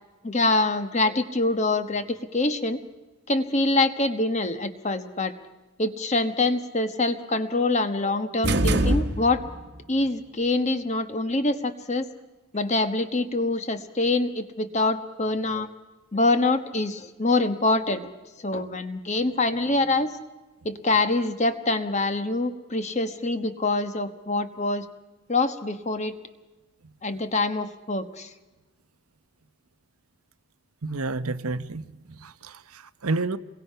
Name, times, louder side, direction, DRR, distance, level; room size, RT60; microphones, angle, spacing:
voice 1, 0.2-2.8 3.3-5.3 5.8-9.4 9.9-12.1 12.5-15.7 16.1-18.1 18.4-20.1 20.6-24.9 25.3-26.2 27.0-28.3, left 2 dB, 30° left, 9 dB, 1.2 m, -25 dB
sound 1, 8.4-9.7, right 1 dB, 50° right, 1.3 m, -23 dB
voice 2, 30.8-31.8 32.2-33.4, right 3 dB, 85° right, 13 dB, 0.9 m, -30 dB
28.5 x 22.0 x 5.7 m, 1.2 s
head